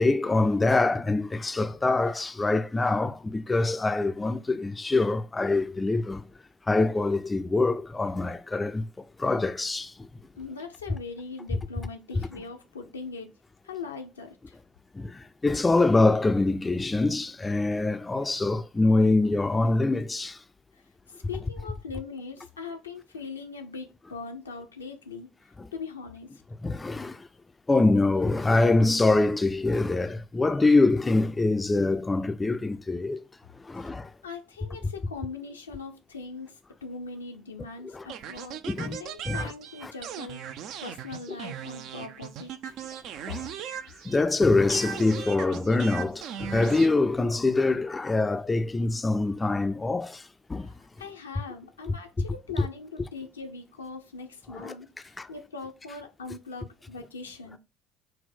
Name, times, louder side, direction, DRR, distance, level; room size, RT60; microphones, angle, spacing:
voice 1, 0.0-6.3 6.7-9.9 14.9-20.4 25.6-25.7 26.6-27.3 27.7-33.2 33.6-34.1 37.9-38.1 38.7-39.0 39.3-39.5 39.8-39.9 43.3-43.5 44.1-50.2 50.5-50.7 54.5-54.7 55.2-55.3, left 2 dB, 20° left, 0.3 m, -24 dB
voice 2, 10.4-13.3 13.6-14.6 20.7-25.3 25.7-26.4 34.2-42.7 50.6-57.6, left 4 dB, 85° left, 0.5 m, -41 dB
sound 1, 38.1-44.4 44.7-46.9, right 8 dB, 55° right, 0.3 m, -38 dB
4.2 x 2.1 x 4.2 m
figure-of-eight pair, 55°, 0 cm